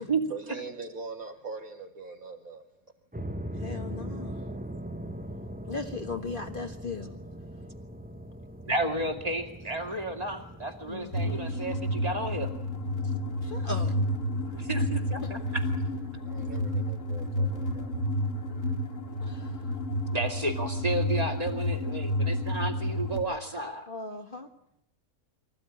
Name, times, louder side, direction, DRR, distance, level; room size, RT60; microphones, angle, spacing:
voice 1, 0.0-2.6 9.7-9.9 16.2-17.9, right 4 dB, 80° right, 4 dB, 3.3 m, -42 dB
sound 1, 3.1-18.3, equal, 5° right, 0.9 m, -42 dB
voice 2, 3.6-4.4 5.7-7.1 10.9-11.4 13.4-13.9 15.2-15.3 19.2-19.6 23.9-24.5, left 3 dB, 40° left, 4 dB, 1.5 m, -37 dB
voice 3, 8.7-12.5 14.5-15.6 20.1-23.9, right 2 dB, 25° right, 4 dB, 2.7 m, -32 dB
sound 2, 11.1-23.2, left 1 dB, 60° left, 2.7 m, -30 dB
24.5 x 15.0 x 9.9 m, 0.75 s
omnidirectional pair, 1.5 m